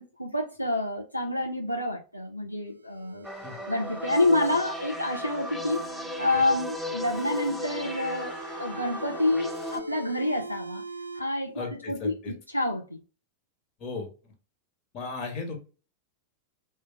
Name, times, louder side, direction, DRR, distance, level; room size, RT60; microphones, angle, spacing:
voice 1, 0.0-3.3 3.7-5.8 6.2-10.8 11.1-13.0, left 2 dB, 90° left, 0.4 m, -28 dB
sound 1, 2.7-6.6 7.1-11.2, right 1 dB, 85° right, 0.3 m, -43 dB
sound 2, 3.2-9.8, equal, ahead, 0.5 m, -36 dB
voice 2, 11.5-12.3 13.8-14.1 14.9-15.6, left 4 dB, 40° left, 1.1 m, -35 dB
3.3 x 2.2 x 3.0 m
figure-of-eight pair, 90°, 0 cm